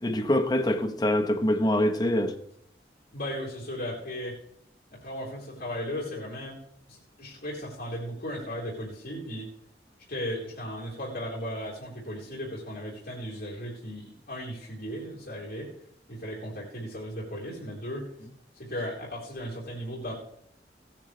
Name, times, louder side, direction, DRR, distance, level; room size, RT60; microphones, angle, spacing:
voice 1, 0.0-2.4, left 1 dB, 20° left, 1.1 m, -24 dB
voice 2, 3.1-4.4 4.9-6.6 6.9-9.5 10.1-15.7 16.1-18.1 18.6-20.1, equal, 55° left, 3.8 m, -36 dB
16.5 x 10.5 x 3.3 m
head